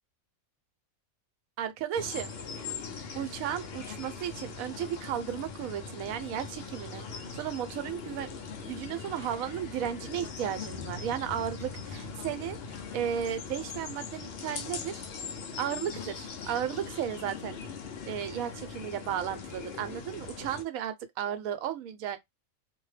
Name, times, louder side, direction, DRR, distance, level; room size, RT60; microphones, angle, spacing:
voice 1, 1.6-2.3 3.2-15.0 15.6-17.6 18.1-22.2, right 10 dB, 80° right, 1.0 m, -34 dB
sound 1, 1.9-20.6, left 5 dB, 60° left, 0.7 m, -41 dB
2.7 x 2.2 x 3.2 m
omnidirectional pair, 1.5 m